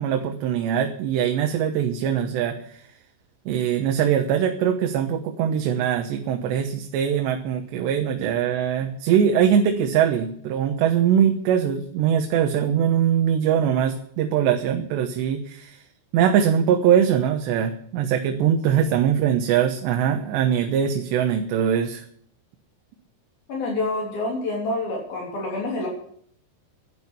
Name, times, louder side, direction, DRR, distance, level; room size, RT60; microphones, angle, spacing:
voice 1, 0.0-2.8 3.5-15.8 16.1-22.0, right 8 dB, 85° right, 4 dB, 3.3 m, -22 dB
voice 2, 23.5-25.9, left 2 dB, 60° left, -1 dB, 5.0 m, -27 dB
11.5 x 11.5 x 8.3 m, 0.63 s
omnidirectional pair, 4.9 m